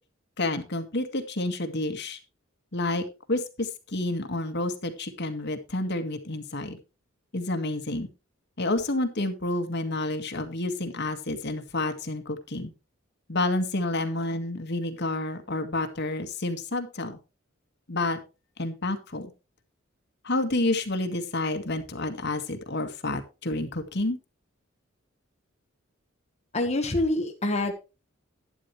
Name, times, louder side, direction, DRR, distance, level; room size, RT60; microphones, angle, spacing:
voice 1, 0.4-2.2 2.7-6.8 7.3-8.1 8.6-12.7 13.3-17.2 17.9-18.2 18.6-19.3 20.2-24.2, left 2 dB, 55° left, 6 dB, 2.0 m, -29 dB
voice 2, 26.5-27.7, left 2 dB, 35° left, 2 dB, 1.4 m, -26 dB
11.5 x 11.5 x 3.3 m, 0.30 s
head